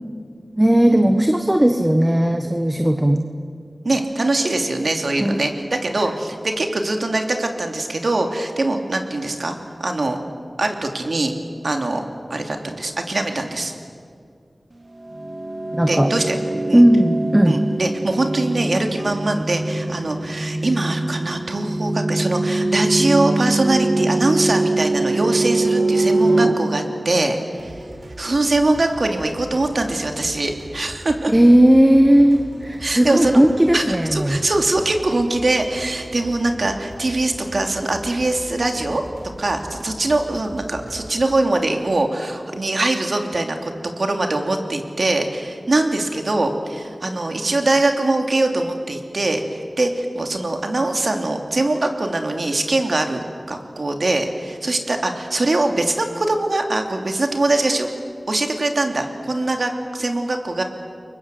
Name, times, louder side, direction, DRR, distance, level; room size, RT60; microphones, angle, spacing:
voice 1, 0.6-3.3 5.2-5.4 15.7-16.1 16.7-17.6 31.3-34.4, right 1 dB, 15° right, 6 dB, 1.4 m, -15 dB
voice 2, 3.8-9.5 9.8-10.2 10.6-11.3 11.6-12.0 12.3-13.7 15.9-16.3 16.7-16.9 17.4-27.7 28.2-31.3 32.8-33.4 33.7-39.0 39.4-57.9 58.3-60.6, right 2 dB, 65° right, 4 dB, 3.0 m, -22 dB
sound 1, 15.0-27.8, right 2 dB, 35° right, 1.4 m, -23 dB
sound 2, 27.6-41.3, right 1 dB, 90° right, 4.4 m, -40 dB
30.0 x 23.0 x 7.9 m, 2.2 s
wide cardioid pair, 70°, 0 cm